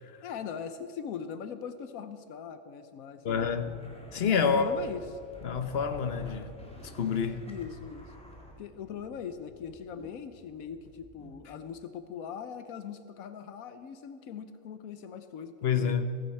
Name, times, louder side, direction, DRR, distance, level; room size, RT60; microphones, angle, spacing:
voice 1, 0.2-3.5 4.5-5.0 7.5-8.1 8.6-16.0, left 7 dB, 85° left, 10 dB, 1.2 m, -40 dB
voice 2, 3.2-3.7 4.1-4.7 5.4-6.5 6.9-7.5 15.6-16.2, left 6 dB, 50° left, 9 dB, 1.0 m, -28 dB
sound 1, 3.3-11.7, equal, 5° left, 1.8 m, -49 dB
16.0 x 15.0 x 4.4 m, 2.5 s
omnidirectional pair, 1.5 m